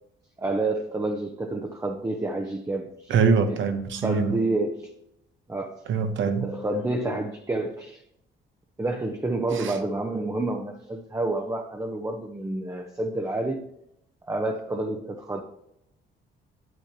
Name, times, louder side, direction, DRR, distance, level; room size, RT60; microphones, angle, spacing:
voice 1, 0.4-3.1 3.5-3.6 4.0-4.9 5.5-5.8 6.2-8.0 8.8-13.6 14.3-15.4, right 2 dB, 15° right, 3 dB, 0.8 m, -29 dB
voice 2, 3.1-4.4 5.9-6.5 9.5-9.8, right 5 dB, 75° right, 9 dB, 1.0 m, -23 dB
9.4 x 8.3 x 2.9 m, 0.78 s
cardioid pair, 90°, 20 cm